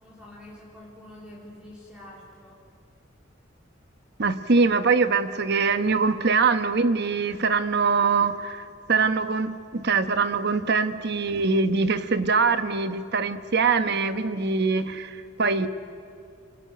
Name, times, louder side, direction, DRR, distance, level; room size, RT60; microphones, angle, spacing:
voice 1, 0.0-2.6, left 1 dB, 5° right, -5 dB, 3.8 m, -46 dB
voice 2, 4.2-15.7, right 4 dB, 55° right, 10 dB, 1.1 m, -23 dB
30.0 x 21.0 x 9.3 m, 2.5 s
head